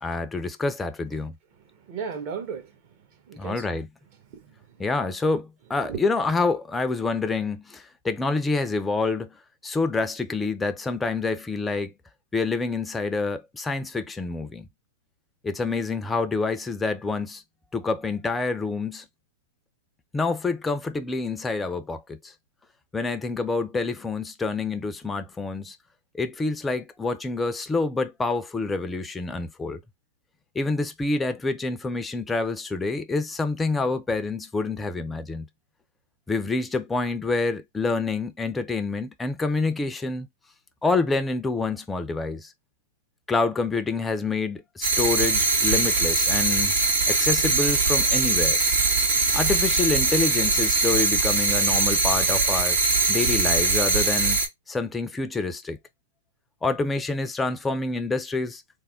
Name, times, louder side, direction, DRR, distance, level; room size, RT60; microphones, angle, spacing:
voice 1, 0.0-1.3 3.4-3.9 4.8-9.3 9.6-11.9 12.3-14.7 15.4-17.4 17.7-19.0 20.1-22.2 22.9-25.8 26.1-29.8 30.5-35.5 36.3-40.3 40.8-42.5 43.3-46.7 47.1-48.6 49.3-52.8 53.1-54.4 54.7-55.8 56.6-58.6, left 3 dB, 10° left, 0.5 m, -27 dB
voice 2, 1.7-2.7 3.3-3.8 4.3-4.8 5.9-6.0, right 6 dB, 45° right, 1.2 m, -35 dB
sound 1, 44.8-54.5, right 3 dB, 70° right, 2.0 m, -22 dB
3.5 x 2.1 x 3.6 m
hypercardioid pair, 125°, 0 cm